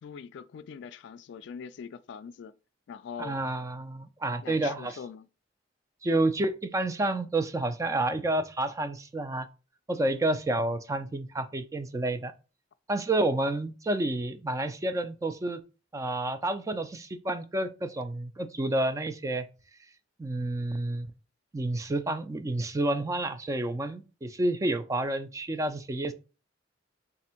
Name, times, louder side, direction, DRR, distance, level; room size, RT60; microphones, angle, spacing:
voice 1, 0.0-2.5 2.9-3.4 4.4-5.3, left 6 dB, 65° left, 0.3 m, -42 dB
voice 2, 3.2-5.0 6.0-9.5 9.9-12.3 12.9-15.6 15.9-19.5 20.2-21.1 21.5-26.1, right 2 dB, 15° right, 0.3 m, -29 dB
3.4 x 2.5 x 4.3 m
head